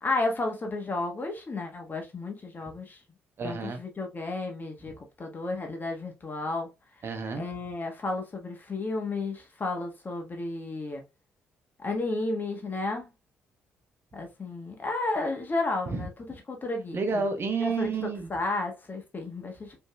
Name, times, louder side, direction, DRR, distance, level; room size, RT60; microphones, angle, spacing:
voice 1, 0.0-3.0 3.4-4.9 5.2-6.7 7.3-11.0 11.8-13.1 14.1-16.1 16.5-17.2 17.6-17.9 18.3-19.8, left 2 dB, 35° left, 1.5 m, -32 dB
voice 2, 3.4-3.8 7.0-7.4 15.9-16.1 16.9-18.3, right 4 dB, 45° right, 1.0 m, -30 dB
5.2 x 3.5 x 2.3 m
hypercardioid pair, 45°, 5 cm